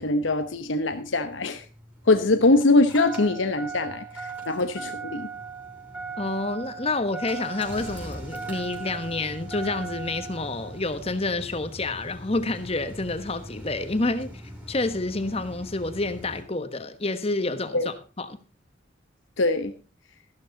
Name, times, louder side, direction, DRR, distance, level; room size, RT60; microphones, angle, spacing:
voice 1, 0.0-1.6 2.1-5.3 17.7-17.9 19.4-19.7, left 2 dB, 80° left, 1.0 m, -22 dB
Engine starting, 1.3-16.4, right 3 dB, 10° right, 4.4 m, -39 dB
voice 2, 6.2-14.3 14.7-18.4, left 2 dB, 30° left, 1.3 m, -28 dB
14.0 x 12.0 x 4.0 m
head